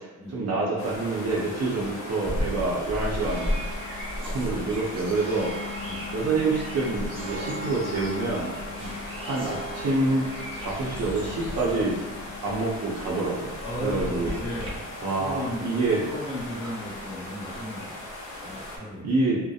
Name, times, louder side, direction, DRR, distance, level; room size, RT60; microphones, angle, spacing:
voice 1, 0.3-3.6 4.2-5.8 6.1-8.5 9.3-10.3 10.6-12.0 12.4-14.4 15.0-16.0 19.0-19.4, right 3 dB, 60° right, -3 dB, 0.6 m, -27 dB
sound 1, 0.8-18.8, left 1 dB, 65° left, 0.7 m, -39 dB
sound 2, 2.2-14.7, left 1 dB, 15° right, 0.9 m, -35 dB
voice 2, 5.8-6.1 8.7-9.1 13.6-15.7 16.0-18.0 18.4-19.4, left 1 dB, 20° left, -8 dB, 1.1 m, -36 dB
sound 3, 10.8-13.0, right 1 dB, 45° left, 1.1 m, -44 dB
2.7 x 2.1 x 2.3 m, 1.1 s
cardioid pair, 90°, 30 cm